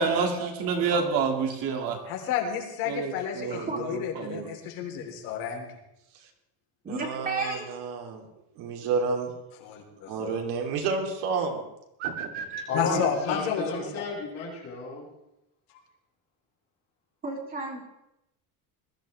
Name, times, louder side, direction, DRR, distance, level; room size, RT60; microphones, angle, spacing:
voice 1, 0.0-2.0 2.9-3.7 4.2-4.5, right 5 dB, 50° right, 3 dB, 2.2 m, -28 dB
voice 2, 2.0-5.7 9.6-10.3 12.7-14.0, left 8 dB, 90° left, 1 dB, 3.6 m, -31 dB
voice 3, 3.5-3.8 6.8-7.7 17.2-17.8, right 3 dB, 20° right, -1 dB, 2.9 m, -32 dB
voice 4, 6.9-8.3 8.5-9.3 10.1-11.6 12.0-12.6, right 5 dB, 70° right, 1 dB, 3.0 m, -30 dB
voice 5, 12.7-15.0, left 3 dB, 40° left, -4 dB, 6.6 m, -32 dB
21.0 x 14.0 x 3.3 m, 0.87 s
cardioid pair, 180°, 42 cm